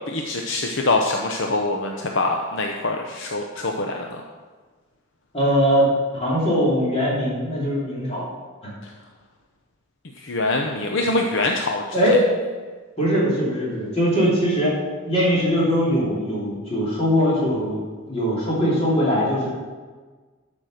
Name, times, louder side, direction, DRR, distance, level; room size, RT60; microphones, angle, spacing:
voice 1, 0.1-4.2 10.2-12.0, left 2 dB, 60° left, 2 dB, 0.8 m, -24 dB
voice 2, 5.3-8.2 8.6-8.7 11.9-12.3 13.0-14.8 15.0-17.8 18.1-19.5, equal, 30° left, -6 dB, 3.2 m, -21 dB
12.0 x 5.4 x 6.4 m, 1.4 s
head